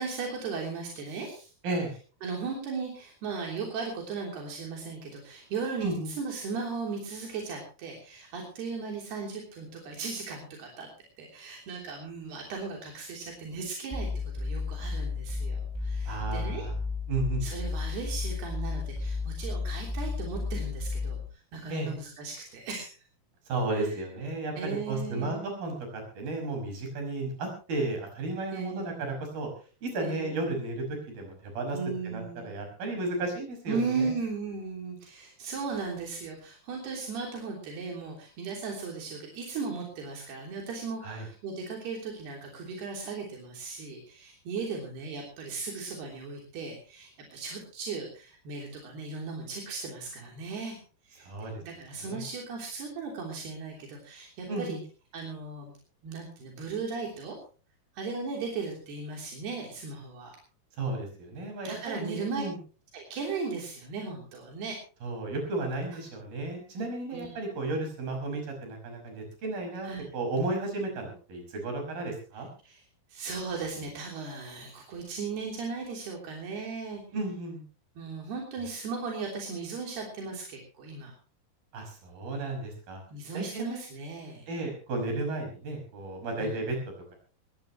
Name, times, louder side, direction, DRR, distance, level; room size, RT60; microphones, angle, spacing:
voice 1, 0.0-1.5 2.2-10.9 11.2-14.1 14.3-16.7 17.4-21.2 21.5-22.9 23.7-23.9 24.6-25.6 28.5-29.0 30.0-30.4 31.7-32.5 33.7-50.8 51.1-51.3 51.6-54.8 55.1-55.7 56.0-57.4 58.0-60.4 61.7-62.4 62.9-64.8 67.1-67.3 69.8-70.0 72.6-72.8 73.1-77.0 78.0-81.1 83.1-84.5 86.4-86.6, right 4 dB, 90° right, 0 dB, 5.4 m, -37 dB
sound 1, 13.9-21.3, left 4 dB, 5° right, 4.6 m, -33 dB
voice 2, 16.1-16.7 17.1-17.4 21.7-21.9 23.5-29.5 29.8-31.8 32.0-34.1 41.0-41.3 51.2-51.5 52.0-52.2 54.5-54.8 60.8-62.6 65.0-72.5 77.1-77.6 81.7-83.0 83.3-83.8 84.5-86.8, right 2 dB, 65° right, 3 dB, 7.4 m, -33 dB
20.5 x 18.0 x 3.0 m, 0.36 s
omnidirectional pair, 4.5 m